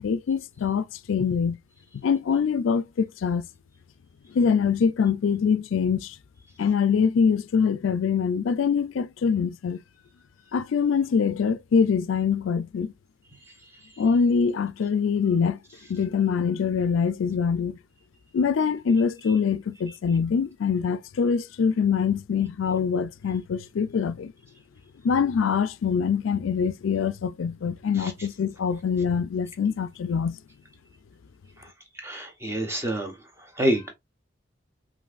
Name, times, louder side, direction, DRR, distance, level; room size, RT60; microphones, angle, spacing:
voice 1, 0.0-1.6 2.0-3.4 4.3-6.2 6.6-9.8 10.5-12.9 14.0-15.6 15.9-17.8 18.3-24.3 25.0-30.4, left 6 dB, 80° left, 0.4 m, -24 dB
voice 2, 32.0-33.1 33.6-33.9, right 1 dB, 15° right, 0.9 m, -27 dB
5.4 x 2.5 x 2.5 m
head